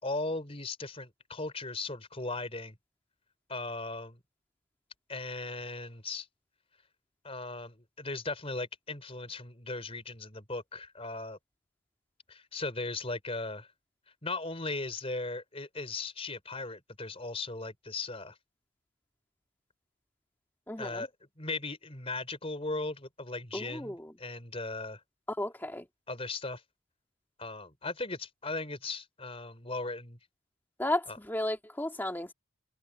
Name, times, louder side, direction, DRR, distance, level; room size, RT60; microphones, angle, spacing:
voice 1, 0.0-2.8 3.5-4.2 5.1-6.3 7.2-11.4 12.3-13.7 14.2-18.4 20.8-21.1 21.4-25.0 26.1-26.6 27.4-30.2 31.1-31.2, left 3 dB, 25° left, 3.9 m, -37 dB
voice 2, 20.7-21.1 23.5-24.1 25.4-25.9 30.8-32.3, left 1 dB, 10° left, 2.1 m, -34 dB
open air
head